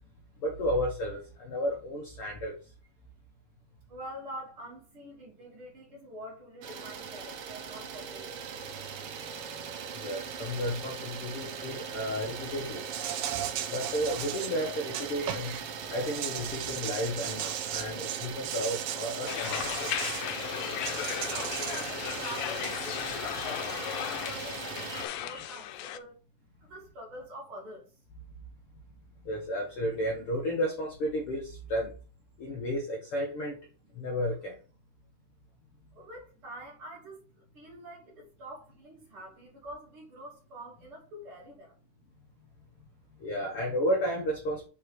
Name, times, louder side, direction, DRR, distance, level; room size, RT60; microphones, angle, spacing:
voice 1, 0.4-2.5 9.9-12.8 13.7-15.5 15.9-19.9 24.9-25.4 29.2-31.9 32.4-33.6 33.9-34.6 43.2-44.7, equal, 70° left, 1.3 m, -32 dB
voice 2, 3.9-8.9 21.2-26.1 26.6-27.9 35.9-41.7, equal, 45° right, 2.2 m, -46 dB
Idling, 6.6-25.1, right 6 dB, 70° right, 1.3 m, -40 dB
Insect, 12.9-15.6 16.0-20.3 20.9-22.8, right 11 dB, 85° right, 2.3 m, -37 dB
sound 1, 19.3-26.0, left 12 dB, 85° left, 2.2 m, -35 dB
5.4 x 4.8 x 4.5 m
omnidirectional pair, 3.8 m